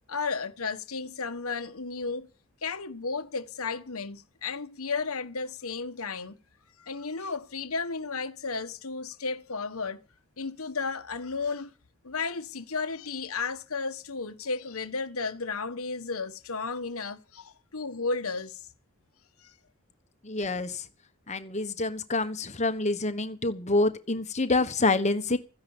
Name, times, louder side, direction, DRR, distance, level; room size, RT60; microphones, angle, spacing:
voice 1, 0.1-2.3 2.6-6.3 6.8-10.0 10.4-11.7 12.0-18.7 19.4-19.5, left 4 dB, 70° left, 1.3 m, -33 dB
voice 2, 20.2-20.8 21.3-25.4, left 2 dB, 30° left, 1.3 m, -27 dB
14.5 x 10.5 x 7.2 m
head